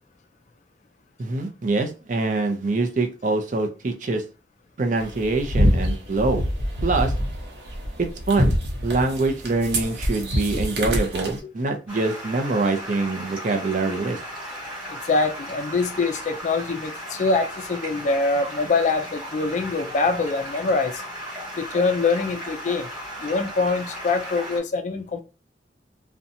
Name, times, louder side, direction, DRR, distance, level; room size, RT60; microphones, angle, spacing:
voice 1, 1.2-4.2 4.8-6.5 6.8-7.1 8.3-8.6 8.8-14.2, right 3 dB, 45° right, 0.5 m, -24 dB
sound 1, 5.0-11.4, equal, 75° right, 0.8 m, -25 dB
Stream, 11.9-24.6, equal, 10° right, 1.3 m, -36 dB
voice 2, 14.9-21.0 21.6-22.9 23.2-25.2, left 3 dB, 45° left, 0.3 m, -24 dB
2.7 x 2.2 x 2.5 m
head